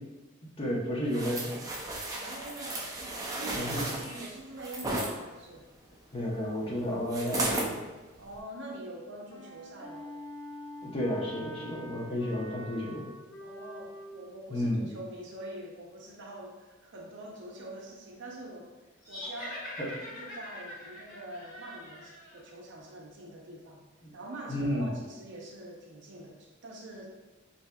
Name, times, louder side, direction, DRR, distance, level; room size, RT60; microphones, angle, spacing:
voice 1, 0.6-1.7 3.5-3.9 6.1-7.8 10.8-13.1 14.5-14.9 19.8-19.9 24.0-24.1 24.5-24.9, equal, 25° left, -4 dB, 0.7 m, -32 dB
sound 1, 1.1-5.1 7.1-7.7 8.3-8.4, right 2 dB, 15° right, 0.4 m, -34 dB
voice 2, 2.1-5.7 8.2-10.1 13.4-19.7 20.0-23.8 24.1-27.1, right 1 dB, 60° right, -1 dB, 0.6 m, -45 dB
Wind instrument woodwind instrument, 9.3-14.2, left 1 dB, 85° left, 0.9 m, -45 dB
sound 2, 19.0-22.4, left 1 dB, 45° left, 1.4 m, -43 dB
4.5 x 2.6 x 2.2 m, 1.2 s
head